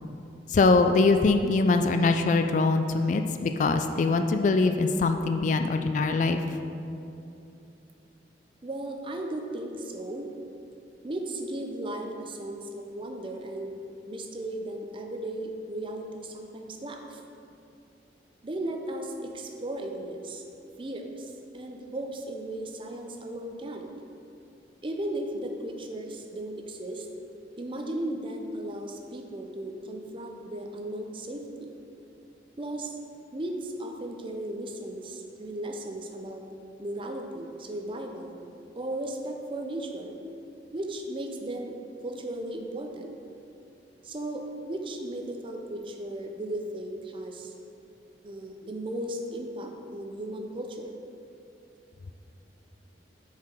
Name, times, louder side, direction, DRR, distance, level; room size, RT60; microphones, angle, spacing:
voice 1, 0.5-6.4, left 3 dB, 45° left, 7 dB, 0.3 m, -23 dB
voice 2, 8.6-10.3 11.0-13.8 14.1-17.2 18.4-20.4 20.8-23.9 24.8-27.1 27.6-31.7 32.6-33.0 33.3-36.4 36.8-38.4 38.8-40.2 40.7-41.7 42.0-43.1 44.0-47.5 48.2-50.9, right 1 dB, 30° right, 3 dB, 0.5 m, -36 dB
7.2 x 4.9 x 4.4 m, 2.7 s
head